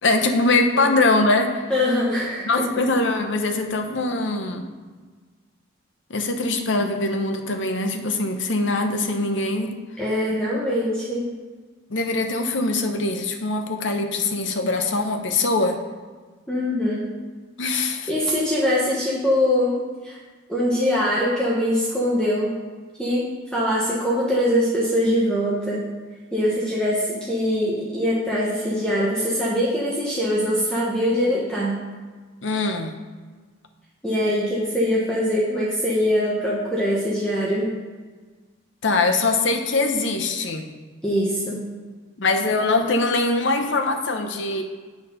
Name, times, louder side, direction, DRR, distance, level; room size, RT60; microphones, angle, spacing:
voice 1, 0.0-1.6 2.4-4.7 6.1-9.7 11.9-15.8 17.6-18.1 32.4-32.9 38.8-40.7 42.2-44.6, left 3 dB, 65° left, 5 dB, 0.8 m, -22 dB
voice 2, 1.7-2.8 10.0-11.3 16.5-17.0 18.1-19.8 20.0-20.2 20.5-22.5 23.0-25.8 26.3-31.8 34.0-37.7 41.0-41.6, equal, 5° left, -6 dB, 1.0 m, -23 dB
8.0 x 4.1 x 5.3 m, 1.4 s
head